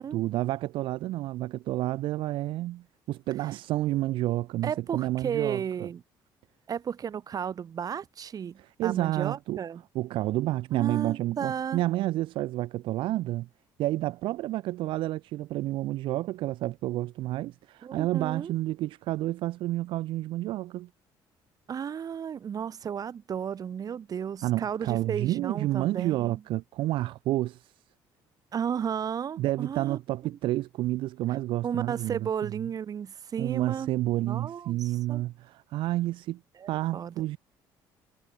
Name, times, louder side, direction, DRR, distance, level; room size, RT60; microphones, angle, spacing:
voice 1, 0.0-5.9 8.6-9.6 9.9-13.5 13.8-20.9 24.4-27.7 29.4-32.3 33.4-36.4 36.7-37.4, right 16 dB, 70° right, 0.4 m, -30 dB
voice 2, 4.6-6.0 6.7-9.8 10.7-11.8 17.8-18.5 21.7-26.4 28.5-30.0 31.6-33.9 34.2-35.2 36.6-37.1, right 8 dB, 45° right, 1.3 m, -33 dB
cardioid pair, 95°, 9 cm